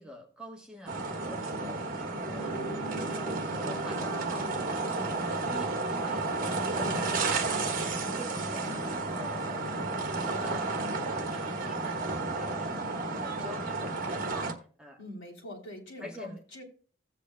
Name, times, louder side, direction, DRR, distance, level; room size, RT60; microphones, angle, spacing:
voice 1, 0.0-4.7 4.9-7.7 8.1-12.9 13.1-14.2 14.8-15.0 16.0-16.6, equal, 5° right, 1 dB, 1.2 m, -47 dB
sound 1, 0.9-14.5, right 3 dB, 45° right, 1.4 m, -32 dB
sound 2, 2.2-7.5, right 2 dB, 50° left, 5.3 m, -43 dB
voice 2, 15.0-16.6, left 1 dB, 75° left, -2 dB, 3.3 m, -44 dB
16.0 x 8.1 x 2.2 m, 0.42 s
head